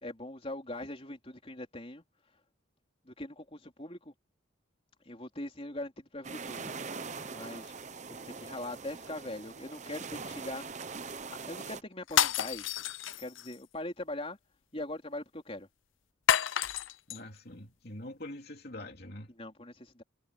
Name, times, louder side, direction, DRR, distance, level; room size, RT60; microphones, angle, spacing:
voice 1, 0.0-2.0 3.0-4.1 5.0-6.8 7.2-7.7 8.1-10.6 11.3-12.8 13.2-14.4 14.7-15.7 19.3-20.0, left 1 dB, 30° left, 4.0 m, -41 dB
sound 1, 6.2-11.8, right 4 dB, 35° right, 0.9 m, -42 dB
sound 2, 12.1-13.6 16.3-17.2, left 9 dB, 80° left, 0.6 m, -29 dB
voice 2, 17.1-19.3, left 1 dB, 50° left, 3.0 m, -44 dB
head